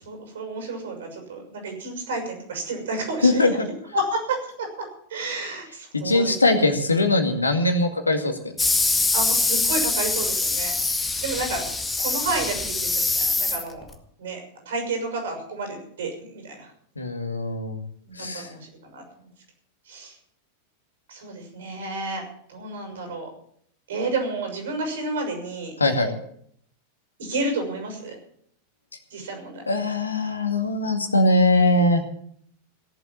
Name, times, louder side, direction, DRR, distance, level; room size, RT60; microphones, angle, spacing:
voice 1, 0.0-3.6 3.9-4.7 5.1-6.3 9.1-10.7 11.2-11.7 12.0-13.8 14.2-14.4 14.6-16.6 18.1-18.6 18.9-19.0 19.9-20.1 21.1-22.2 22.5-23.3 23.9-25.7 27.2-28.2 29.1-29.6, right 2 dB, 60° right, 4 dB, 6.5 m, -30 dB
voice 2, 3.2-3.7 5.9-8.4 17.0-17.8 18.2-18.5 25.8-26.1 29.7-32.0, left 2 dB, 80° left, 7 dB, 2.1 m, -21 dB
sound 1, 8.6-13.9, left 3 dB, 10° left, 1.9 m, -24 dB
17.5 x 7.9 x 9.0 m, 0.65 s
figure-of-eight pair, 90°, 0 cm